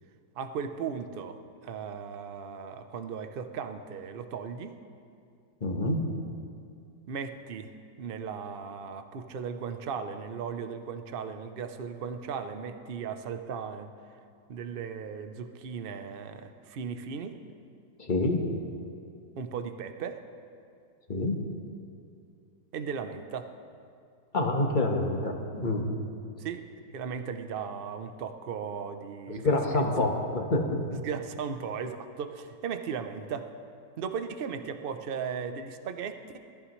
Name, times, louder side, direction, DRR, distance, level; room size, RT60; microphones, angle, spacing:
voice 1, 0.4-1.4 1.6-4.8 7.1-7.7 8.0-13.9 14.5-17.4 19.4-20.2 22.7-23.5 26.4-30.1 30.9-33.5 34.0-36.4, right 6 dB, 60° right, 8 dB, 0.5 m, -37 dB
voice 2, 5.6-6.1 18.0-18.4 21.1-21.4 24.3-25.9 29.3-30.8, left 2 dB, 30° left, 1 dB, 1.3 m, -27 dB
20.5 x 14.5 x 3.2 m, 2.4 s
omnidirectional pair, 1.9 m